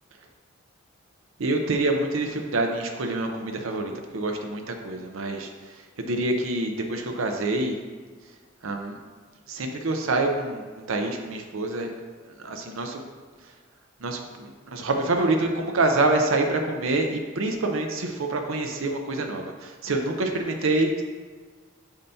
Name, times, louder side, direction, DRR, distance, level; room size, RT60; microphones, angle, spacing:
voice 1, 1.4-5.5 6.0-7.8 8.6-8.9 9.5-11.9 12.4-13.0 14.0-21.0, right 2 dB, 85° right, 3 dB, 0.6 m, -26 dB
8.8 x 5.6 x 2.7 m, 1.5 s
head